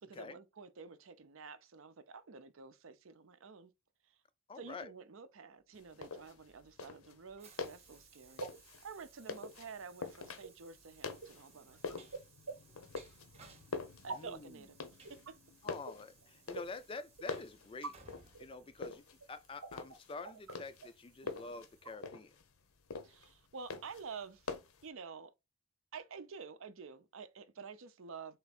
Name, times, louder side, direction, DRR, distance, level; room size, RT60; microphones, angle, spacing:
voice 1, 0.0-3.7 4.1-4.2 4.6-8.4 8.8-12.0 14.0-14.8 15.1-15.4 21.2-21.4 23.0-24.5 24.8-25.3 25.9-28.4, right 5 dB, 65° right, 0.6 m, -50 dB
voice 2, 4.5-4.9 14.1-14.6 15.6-17.9 18.4-19.0 19.3-22.3, left 3 dB, 25° left, 0.3 m, -47 dB
sound 1, 5.7-24.9, left 4 dB, 80° left, 0.8 m, -47 dB
Train, 6.2-19.4, right 4 dB, 30° right, 0.9 m, -63 dB
sound 2, 8.3-22.0, right 4 dB, 85° right, 0.9 m, -50 dB
3.8 x 3.4 x 4.1 m
head